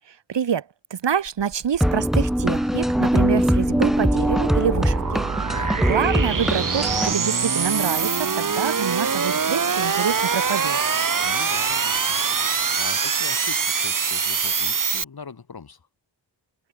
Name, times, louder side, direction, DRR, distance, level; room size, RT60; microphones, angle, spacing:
voice 1, 0.1-5.6 5.9-10.8, right 8 dB, 70° right, 1.7 m, -26 dB
sound 1, 1.3-15.0, right 5 dB, 45° right, 2.0 m, -24 dB
sound 2, 1.8-7.1, equal, ahead, 0.7 m, -22 dB
voice 2, 11.2-12.2 12.5-15.9, left 5 dB, 55° left, 5.7 m, -41 dB
wide cardioid pair, 110°, 44 cm